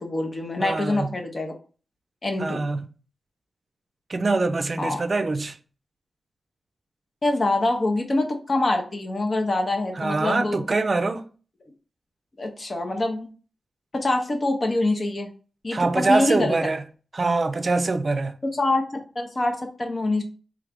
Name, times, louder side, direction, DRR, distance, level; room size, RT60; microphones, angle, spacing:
voice 1, 0.0-1.5 2.2-2.6 4.8-5.0 7.2-10.6 12.4-13.3 13.9-15.3 15.6-16.6 18.5-20.2, left 2 dB, 45° left, 0.8 m, -25 dB
voice 2, 0.6-1.1 2.4-2.9 4.1-5.5 10.0-11.2 15.7-16.8 17.1-18.3, right 3 dB, 50° right, 0.4 m, -24 dB
3.4 x 2.4 x 3.4 m
cardioid pair, 55°, 0 cm